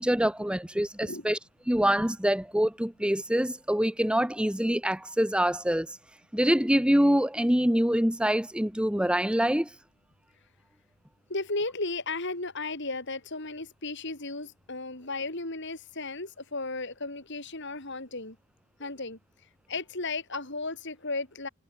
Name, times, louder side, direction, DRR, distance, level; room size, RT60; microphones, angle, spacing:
voice 1, 0.0-1.4 1.7-5.9 6.3-9.7, equal, 5° right, 0.9 m, -25 dB
voice 2, 11.3-18.4 18.8-19.2 19.7-21.5, left 3 dB, 55° left, 3.9 m, -35 dB
head